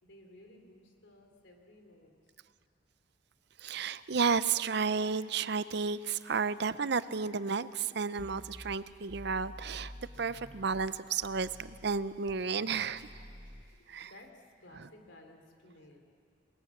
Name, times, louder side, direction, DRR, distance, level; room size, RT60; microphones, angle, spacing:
voice 1, 0.0-2.1 13.9-16.0, left 1 dB, 70° left, 3 dB, 3.5 m, -56 dB
voice 2, 3.6-9.9 10.2-13.1 13.9-14.1, right 5 dB, 60° right, 15 dB, 0.6 m, -32 dB
sound 1, 8.2-10.9 11.2-13.6, equal, 10° left, 2.2 m, -50 dB
28.0 x 20.5 x 7.3 m, 2.4 s
head